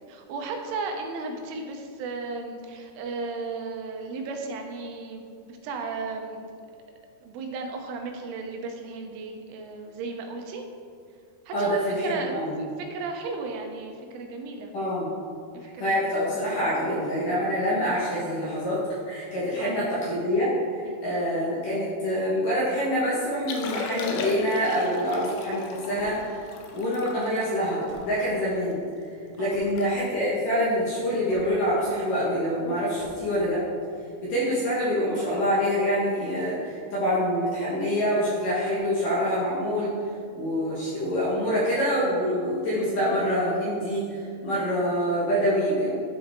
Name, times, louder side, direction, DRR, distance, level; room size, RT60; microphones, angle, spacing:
voice 1, 0.1-6.4 7.2-10.6 11.5-14.7 15.7-16.0 19.6-19.8 20.9-21.1 29.4-29.7 42.9-43.0, right 3 dB, 90° right, 3 dB, 3.3 m, -35 dB
voice 2, 11.5-12.5 14.7-15.1 15.6-18.8 19.1-26.5 26.7-28.8 29.3-33.6 34.2-39.9 40.3-45.9, equal, 60° left, -8 dB, 2.3 m, -26 dB
Liquid, 23.4-28.7 29.2-29.3 29.6-29.9 30.1-30.4 31.0-31.2 32.7-32.8, left 4 dB, 85° left, 2.6 m, -36 dB
sound 1, 26.0-26.3 27.5-27.6 27.9-28.2 29.5-29.8 31.3-31.5 33.0-33.3, equal, 50° right, 2.0 m, -45 dB
11.5 x 4.7 x 3.6 m, 2.3 s
omnidirectional pair, 5.4 m